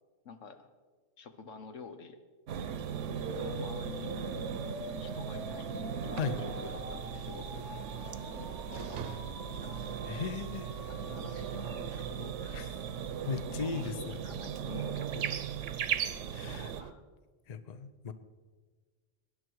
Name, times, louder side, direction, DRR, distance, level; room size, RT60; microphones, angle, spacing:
voice 1, 0.2-0.7 1.2-2.2 3.4-4.3 4.9-7.7 8.3-9.9 11.0-12.7 13.5-15.9 16.4-17.0, left 4 dB, 80° left, 8 dB, 1.4 m, -48 dB
sound 1, 2.5-16.8, right 8 dB, 75° right, 1.1 m, -38 dB
sound 2, 3.1-13.1, left 2 dB, 65° left, 1.9 m, -47 dB
sound 3, 6.3-16.9, right 6 dB, 55° right, 0.9 m, -48 dB
voice 2, 10.1-10.7 12.5-12.7 13.2-14.2 16.3-16.7 17.5-18.1, left 5 dB, 40° left, 11 dB, 0.7 m, -37 dB
20.5 x 10.5 x 4.7 m, 1.4 s
omnidirectional pair, 1.3 m